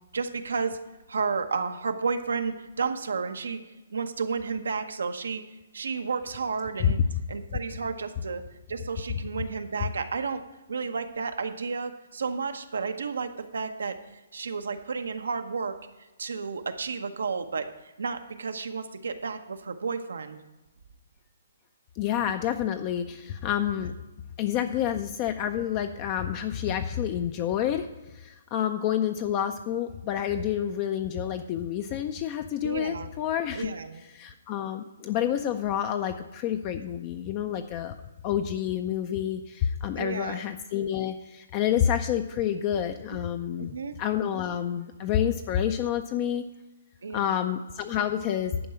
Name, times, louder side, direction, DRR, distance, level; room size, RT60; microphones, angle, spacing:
voice 1, 0.1-0.8 1.1-3.6 3.9-5.4 5.7-7.0 7.3-8.4 8.7-10.4 10.7-15.7 16.2-20.4 32.6-33.1 33.5-34.0 40.0-40.4 43.1-43.2 43.6-44.0 47.0-47.4, right 5 dB, 85° right, 7 dB, 0.9 m, -32 dB
voice 2, 22.0-23.9 24.4-27.9 28.1-33.7 34.1-37.9 38.2-46.4 47.1-48.7, left 10 dB, 30° left, 8 dB, 0.4 m, -28 dB
11.0 x 4.7 x 7.4 m, 1.1 s
hypercardioid pair, 155°, 0 cm